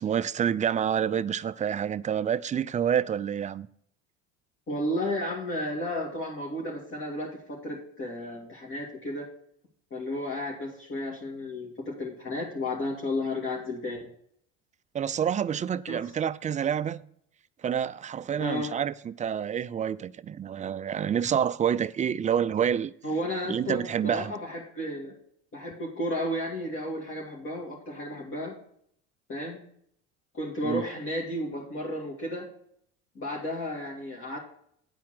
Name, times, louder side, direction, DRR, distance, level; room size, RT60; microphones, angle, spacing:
voice 1, 0.0-3.7 14.9-17.0 17.6-22.9 23.5-24.3 30.6-30.9, right 8 dB, 25° right, 0.4 m, -28 dB
voice 2, 4.7-9.3 9.9-14.1 15.9-16.0 18.4-18.7 23.0-25.2 25.5-28.6 29.3-29.6 30.3-32.5 33.1-34.4, left 1 dB, 40° left, 2.4 m, -33 dB
9.6 x 4.4 x 7.6 m
supercardioid pair, 85°, 33 cm